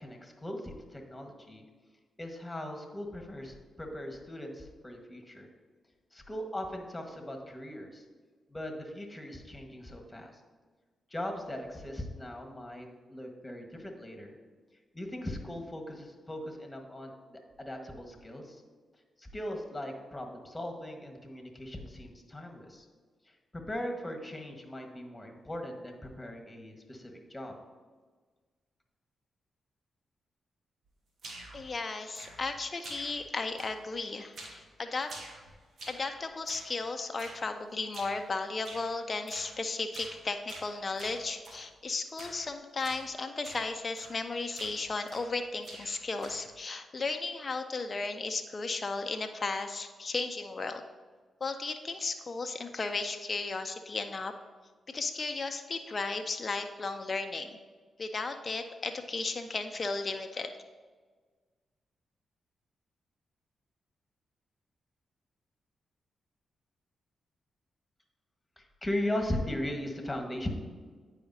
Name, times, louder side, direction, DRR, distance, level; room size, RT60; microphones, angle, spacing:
voice 1, 0.0-1.6 2.2-5.5 6.1-8.0 8.5-10.4 11.1-14.4 14.9-18.6 19.2-22.9 23.2-23.3 23.7-27.5 68.6-70.5, left 1 dB, 20° left, 3 dB, 1.4 m, -39 dB
sound 1, 31.2-31.7 32.2-32.6 32.8-33.3 33.6-34.0 34.4-34.7 35.0-36.1 36.5-36.8 37.2-37.4 37.9-38.2 38.7-38.9 39.3-39.5 39.9-40.2 40.5-41.6 42.2-42.5 42.8-43.1 43.4-43.7 44.0-44.3 44.6-45.4 45.6-46.5, right 2 dB, 65° right, 1.3 m, -47 dB
voice 2, 31.5-35.1 35.9-50.8 51.4-54.3 54.9-57.6 58.0-60.5, left 3 dB, 45° left, 6 dB, 0.5 m, -35 dB
9.1 x 4.9 x 2.7 m, 1.5 s
hypercardioid pair, 40°, 0 cm